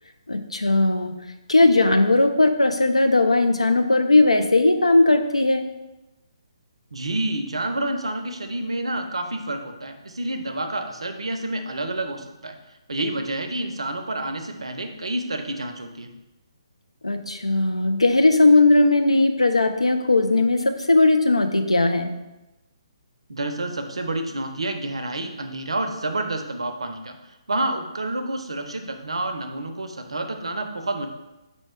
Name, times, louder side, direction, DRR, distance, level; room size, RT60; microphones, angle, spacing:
voice 1, 0.3-1.2 1.5-5.7 17.0-22.1, left 2 dB, 85° left, 7 dB, 0.4 m, -18 dB
voice 2, 6.9-12.6 12.9-16.1 23.3-31.1, right 2 dB, 70° right, 6 dB, 0.5 m, -29 dB
4.2 x 2.8 x 3.1 m, 1.0 s
figure-of-eight pair, 135°, 3 cm